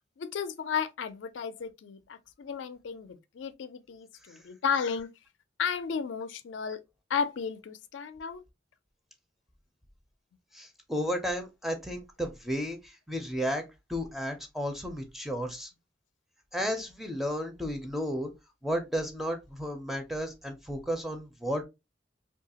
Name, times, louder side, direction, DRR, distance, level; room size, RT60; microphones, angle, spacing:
voice 1, 0.2-5.1 5.6-6.8 7.1-8.4, left 6 dB, 90° left, 0.4 m, -33 dB
voice 2, 10.5-13.6 13.9-15.7 16.5-18.3 18.6-21.6, equal, ahead, 0.4 m, -33 dB
2.7 x 2.3 x 2.8 m
head